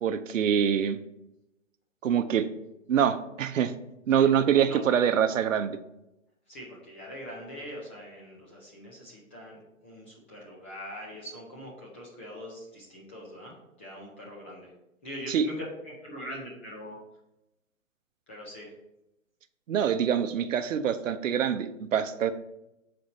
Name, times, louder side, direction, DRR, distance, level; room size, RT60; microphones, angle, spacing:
voice 1, 0.0-1.0 2.0-2.5 2.9-3.7 4.1-5.7 15.3-15.5 19.7-22.3, right 8 dB, 75° right, 10 dB, 0.7 m, -25 dB
voice 2, 6.5-14.7 15.0-17.0 18.3-18.7, equal, 10° left, -4 dB, 0.3 m, -42 dB
6.2 x 4.2 x 4.0 m, 0.89 s
hypercardioid pair, 135°, 39 cm